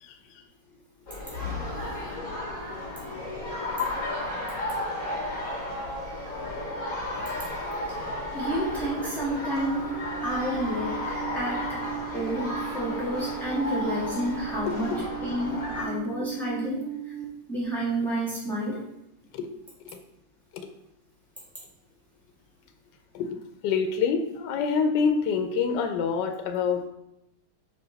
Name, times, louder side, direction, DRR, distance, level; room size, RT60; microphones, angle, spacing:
sound 1, 1.1-15.8, left 1 dB, 50° left, 2.0 m, -33 dB
voice 1, 7.1-7.5 7.9-8.0 8.3-9.9 10.2-11.0 11.3-11.8 12.1-14.9 15.2-16.8 17.5-18.8, equal, ahead, -8 dB, 2.0 m, -30 dB
Alarm, 8.3-17.2, right 13 dB, 55° right, 1.2 m, -37 dB
voice 2, 14.7-15.1 19.3-19.5 19.8-20.0 20.5-20.7 23.1-23.4 23.6-26.8, left 5 dB, 85° left, 6 dB, 1.2 m, -27 dB
5.1 x 4.8 x 4.0 m, 0.86 s
omnidirectional pair, 1.8 m